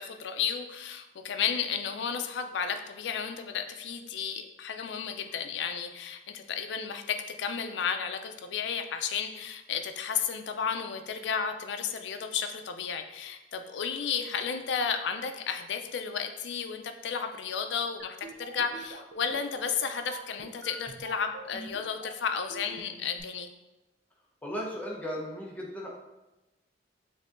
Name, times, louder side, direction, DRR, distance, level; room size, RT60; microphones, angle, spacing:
voice 1, 0.0-23.5, left 7 dB, 75° left, 7 dB, 0.4 m, -33 dB
sound 1, 18.0-23.2, right 3 dB, 55° right, 0.5 m, -45 dB
voice 2, 24.4-26.0, equal, 10° left, -3 dB, 0.8 m, -36 dB
6.6 x 2.7 x 2.5 m, 1.0 s
head